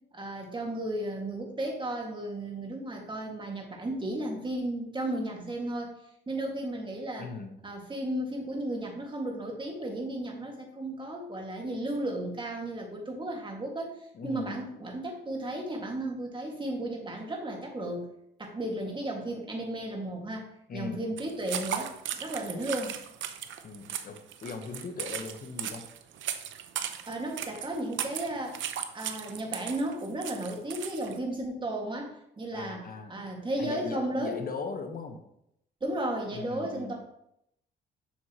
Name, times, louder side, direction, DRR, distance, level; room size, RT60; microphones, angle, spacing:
voice 1, 0.1-5.9 6.3-7.3 7.6-13.9 14.2-18.1 18.4-20.5 20.7-23.0 27.0-28.6 28.9-34.4 35.8-36.9, right 1 dB, 25° right, 0 dB, 2.0 m, -34 dB
voice 2, 7.2-7.5 14.1-14.6 20.7-21.1 23.6-25.9 32.5-33.3 33.6-35.2 36.3-36.9, left 4 dB, 45° left, 6 dB, 1.1 m, -39 dB
sound 1, 21.2-31.2, right 9 dB, 70° right, 0.7 m, -37 dB
7.1 x 6.4 x 3.0 m, 0.77 s
cardioid pair, 90°, 20 cm